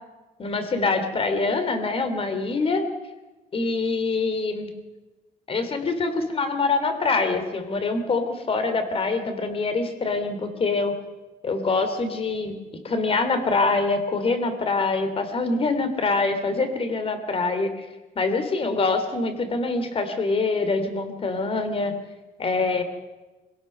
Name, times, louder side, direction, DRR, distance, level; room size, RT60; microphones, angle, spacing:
voice 1, 0.4-2.8 3.5-4.7 5.5-10.9 11.4-12.5 12.8-17.8 18.2-21.9 22.4-22.8, left 3 dB, 40° left, 8 dB, 3.0 m, -24 dB
24.5 x 17.0 x 6.7 m, 1.1 s
cardioid pair, 125°, 15 cm